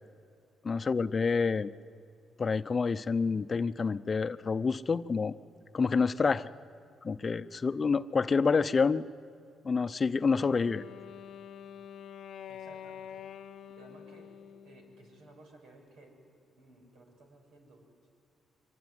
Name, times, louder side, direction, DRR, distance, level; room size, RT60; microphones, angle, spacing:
voice 1, 0.6-1.7 2.4-5.3 5.7-6.5 7.0-9.0 9.6-10.8, left 5 dB, 35° left, 12 dB, 0.7 m, -28 dB
Wind instrument woodwind instrument, 10.3-15.3, left 9 dB, 65° left, 0.8 m, -47 dB
voice 2, 12.4-13.3 13.7-14.3 14.6-16.2 16.4-17.9, right 2 dB, 90° right, 1 dB, 6.8 m, -56 dB
25.0 x 23.5 x 9.7 m, 2.6 s
cardioid pair, 90°, 0 cm